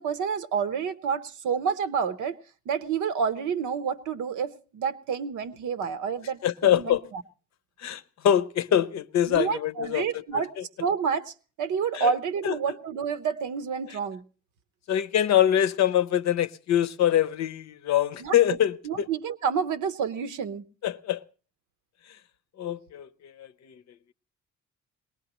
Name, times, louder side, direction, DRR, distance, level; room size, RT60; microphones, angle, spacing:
voice 1, 0.0-2.4 2.7-7.2 9.3-10.5 10.8-11.3 11.6-14.2 18.2-18.3 18.8-20.6, right 6 dB, 80° right, 0.9 m, -29 dB
voice 2, 6.4-7.0 7.8-10.0 10.3-10.6 11.9-12.1 12.4-12.5 14.9-19.1 20.8-21.2 22.6-23.7, left 11 dB, 65° left, 0.6 m, -24 dB
21.5 x 18.5 x 2.9 m
cardioid pair, 90°, 30 cm